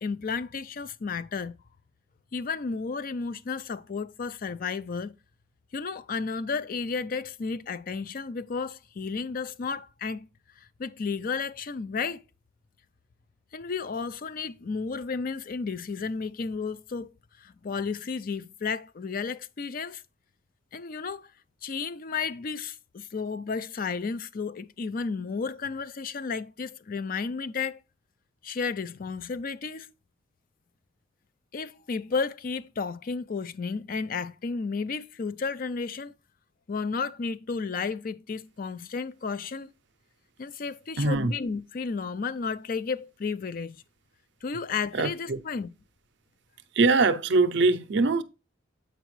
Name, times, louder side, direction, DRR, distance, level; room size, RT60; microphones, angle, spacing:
voice 1, 0.0-1.6 2.3-5.1 5.7-10.3 10.6-12.2 13.5-17.1 17.4-20.0 20.7-21.3 21.6-27.8 28.4-29.9 31.5-36.1 36.7-39.7 40.4-43.8 44.4-45.7, left 5 dB, 45° left, 0.4 m, -32 dB
voice 2, 41.0-41.3 44.9-45.4 46.7-48.2, right 3 dB, 60° right, 0.6 m, -22 dB
7.9 x 4.9 x 3.1 m
head